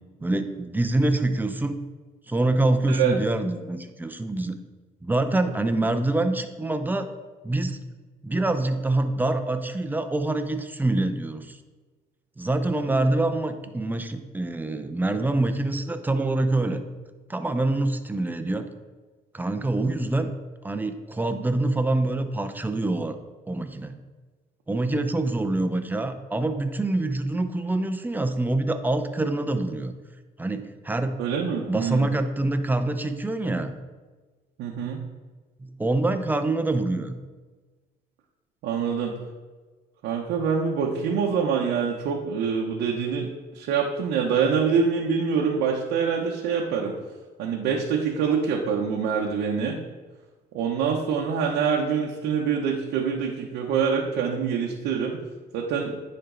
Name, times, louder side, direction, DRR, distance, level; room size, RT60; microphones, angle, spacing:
voice 1, 0.2-1.8 2.3-4.5 5.0-7.1 7.4-7.8 8.2-11.6 12.4-16.8 17.3-18.7 19.3-20.3 20.6-23.2 23.5-24.0 24.7-29.9 30.4-31.2 31.7-33.7 35.6-37.2, right 2 dB, 10° right, 8 dB, 0.6 m, -25 dB
voice 2, 31.2-32.1 34.6-35.0 38.6-39.2 40.0-47.0 47.4-49.8 50.5-55.2 55.5-56.0, right 6 dB, 85° right, -1 dB, 0.9 m, -25 dB
10.0 x 4.4 x 3.8 m, 1.3 s
cardioid pair, 110°, 17 cm